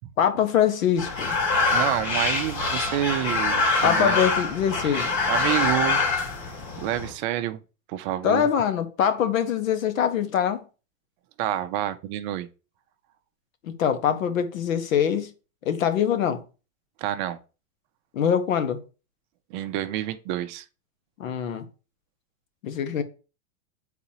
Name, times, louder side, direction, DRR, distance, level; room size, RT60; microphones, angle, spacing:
voice 1, 0.2-1.3 3.8-5.2 8.2-10.6 13.6-15.3 15.6-16.4 18.1-18.8 21.2-21.6 22.6-23.0, left 8 dB, 80° left, 1.2 m, -23 dB
sound 1, 1.0-7.1, left 3 dB, 55° left, 2.4 m, -25 dB
voice 2, 1.7-4.2 4.8-5.0 5.3-6.1 6.8-7.6 7.9-8.5 11.4-12.5 17.0-17.4 19.5-20.6, right 12 dB, 40° right, 0.5 m, -28 dB
8.5 x 4.1 x 2.8 m
supercardioid pair, 140°, 39 cm